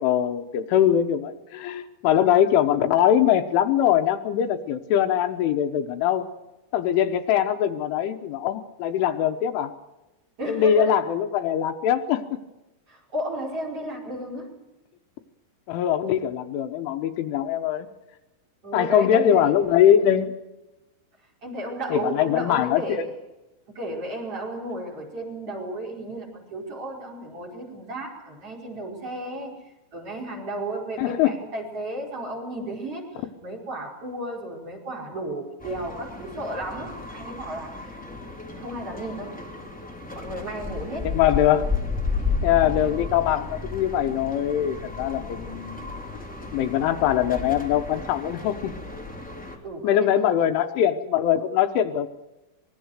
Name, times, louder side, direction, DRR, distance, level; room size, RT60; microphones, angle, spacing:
voice 1, 0.0-6.3 6.7-9.7 10.5-12.2 15.7-17.9 18.7-20.3 21.9-23.1 31.0-31.3 41.0-41.7 42.4-45.9 46.1-46.2 46.5-48.7 49.8-52.1, left 10 dB, 80° left, 6 dB, 3.4 m, -22 dB
voice 2, 10.4-10.9 12.9-14.6 18.6-19.5 21.4-23.1 23.8-38.0 38.6-39.3 40.1-41.2 49.6-50.2, right 1 dB, 30° right, -1 dB, 5.6 m, -33 dB
sound 1, 35.6-49.6, left 4 dB, 5° left, 1.6 m, -33 dB
25.0 x 21.5 x 6.5 m, 1.0 s
omnidirectional pair, 5.8 m